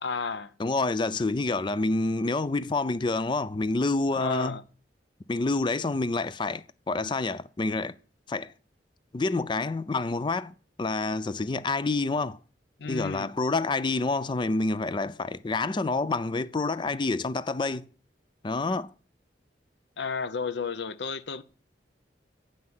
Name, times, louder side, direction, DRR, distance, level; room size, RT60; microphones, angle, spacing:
voice 1, 0.0-0.5 4.1-4.6 12.8-13.3 20.0-21.4, left 5 dB, 70° left, 0.7 m, -32 dB
voice 2, 0.6-4.6 5.3-8.0 8.3-8.5 9.1-12.4 12.9-17.9 18.4-18.9, left 3 dB, 25° left, 0.4 m, -28 dB
8.5 x 5.7 x 7.7 m
head